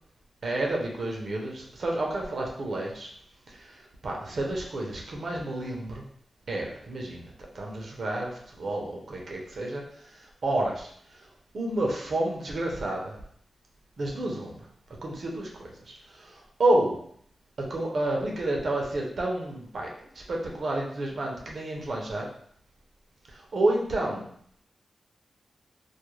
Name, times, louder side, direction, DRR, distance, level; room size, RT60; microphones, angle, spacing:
voice 1, 0.4-3.1 3.5-6.0 6.5-9.8 10.1-10.9 11.5-13.2 14.0-14.6 15.0-17.0 17.6-22.3 23.3-24.3, right 1 dB, 65° right, -1 dB, 0.6 m, -30 dB
2.3 x 2.1 x 3.0 m, 0.64 s
cardioid pair, 55°, 0 cm